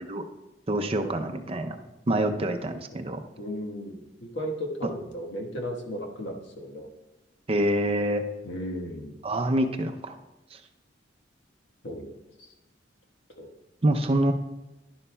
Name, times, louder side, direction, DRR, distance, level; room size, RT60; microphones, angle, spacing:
voice 1, 0.7-1.8 2.1-3.2 7.5-8.2 9.2-10.1 13.8-14.3, right 1 dB, 30° right, 6 dB, 0.5 m, -26 dB
voice 2, 3.4-6.9 8.4-9.2 11.8-12.5 13.4-13.5, equal, 70° left, 1 dB, 1.3 m, -35 dB
11.0 x 11.0 x 2.2 m, 1.0 s
head